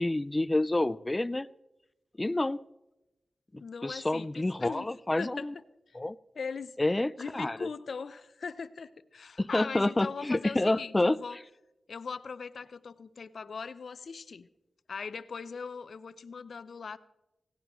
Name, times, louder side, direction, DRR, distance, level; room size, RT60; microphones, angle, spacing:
voice 1, 0.0-1.5 2.2-2.6 3.5-5.5 5.9-6.2 6.8-7.7 9.4-11.2, left 2 dB, 30° left, 15 dB, 0.4 m, -28 dB
voice 2, 3.6-4.9 5.2-5.5 5.9-6.0 6.4-6.8 7.2-11.4 11.9-14.5 14.9-17.0, left 5 dB, 75° left, 14 dB, 0.6 m, -40 dB
17.5 x 16.5 x 3.1 m, 0.95 s
cardioid pair, 40°, 0 cm